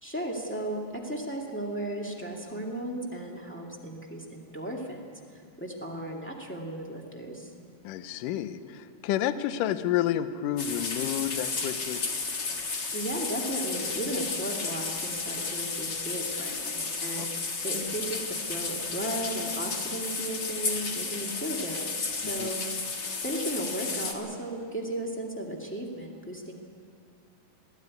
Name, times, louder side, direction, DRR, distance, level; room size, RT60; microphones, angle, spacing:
voice 1, 0.0-5.1 5.6-7.5 12.9-17.3 17.6-22.6 23.2-26.5, right 1 dB, 15° left, -2 dB, 0.4 m, -35 dB
voice 2, 7.8-12.0 17.2-17.3 22.2-22.5, left 11 dB, 75° left, 12 dB, 2.1 m, -30 dB
sound 1, 10.6-24.1, left 4 dB, 45° left, 1.4 m, -33 dB
22.0 x 15.0 x 9.6 m, 2.2 s
omnidirectional pair, 4.6 m